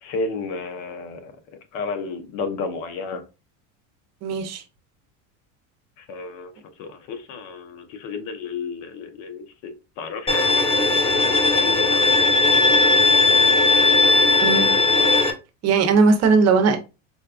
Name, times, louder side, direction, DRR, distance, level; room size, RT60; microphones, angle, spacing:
voice 1, 0.0-1.4 1.7-3.2 6.0-13.4 13.8-14.4, left 4 dB, 70° left, 0.9 m, -33 dB
voice 2, 4.2-4.6 14.4-14.7 15.6-16.8, right 4 dB, 45° right, 0.7 m, -18 dB
Bowed string instrument, 10.3-15.3, left 3 dB, 15° left, 0.4 m, -17 dB
4.2 x 2.3 x 2.4 m
supercardioid pair, 115°, 38 cm